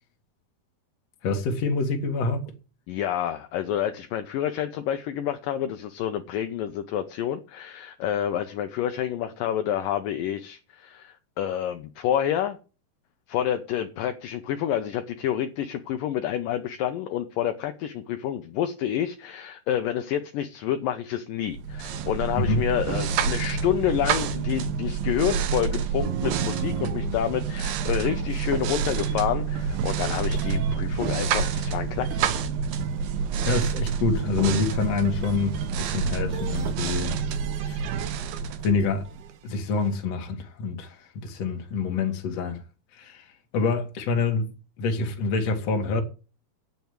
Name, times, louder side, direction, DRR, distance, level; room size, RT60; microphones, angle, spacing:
voice 1, 1.2-2.5 22.4-22.6 33.5-37.2 37.6-37.9 38.6-39.1 39.4-42.6 42.9-43.3 43.5-44.5 44.8-46.0, left 4 dB, 55° left, 2.2 m, -26 dB
voice 2, 2.9-12.6 13.3-32.2, left 10 dB, 75° left, 2.2 m, -28 dB
sound 1, 21.5-39.3, right 6 dB, 70° right, 2.6 m, -28 dB
sound 2, 26.0-29.3 29.6-30.9 31.6-32.4 32.8-33.6 34.8-35.8 36.3-38.5 38.8-40.0, right 9 dB, 90° right, 3.2 m, -38 dB
9.1 x 7.0 x 7.9 m
omnidirectional pair, 4.5 m